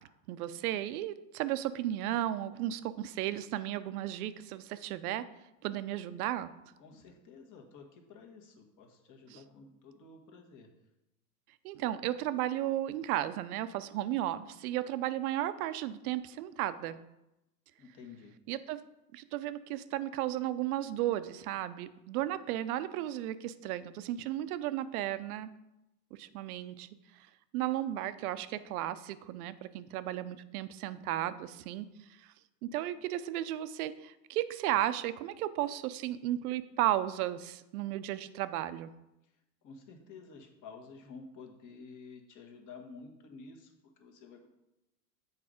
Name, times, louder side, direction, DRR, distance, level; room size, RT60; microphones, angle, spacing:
voice 1, 0.3-5.3 5.6-6.5 9.3-9.4 11.6-17.0 18.5-18.8 19.1-25.5 26.2-26.9 27.5-31.9 32.2-32.3 32.6-38.9, right 13 dB, 60° right, 13 dB, 0.6 m, -34 dB
voice 2, 6.8-10.7 17.8-18.4 39.6-44.5, left 4 dB, 40° left, 4 dB, 1.4 m, -51 dB
7.2 x 4.1 x 5.0 m, 0.91 s
hypercardioid pair, 100°, 49 cm